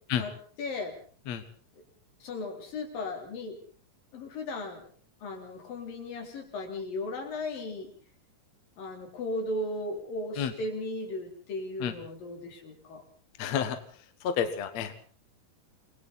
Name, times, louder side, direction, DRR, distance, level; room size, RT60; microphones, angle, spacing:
voice 1, 0.6-0.9 2.2-3.6 4.1-4.9 5.2-7.9 8.8-13.0, left 2 dB, 80° left, 2 dB, 5.6 m, -36 dB
voice 2, 13.4-13.8 14.2-14.9, left 8 dB, 60° left, 9 dB, 2.4 m, -29 dB
29.5 x 21.0 x 4.2 m, 0.43 s
omnidirectional pair, 3.9 m